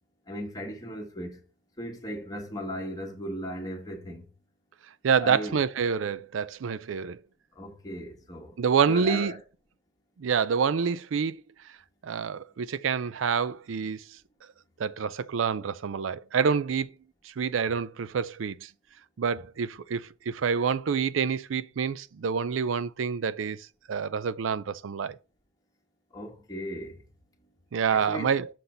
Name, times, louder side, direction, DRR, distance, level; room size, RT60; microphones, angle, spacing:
voice 1, 0.3-1.4 1.8-4.3 5.2-5.6 7.5-8.6 8.9-9.4 26.1-27.0 27.9-28.3, equal, 20° left, 1.6 m, -37 dB
voice 2, 5.0-7.2 8.6-9.3 10.2-11.3 12.0-14.0 14.8-16.9 17.4-18.7 19.2-25.2 27.7-28.5, right 6 dB, 85° right, 0.4 m, -27 dB
6.6 x 4.0 x 5.6 m
head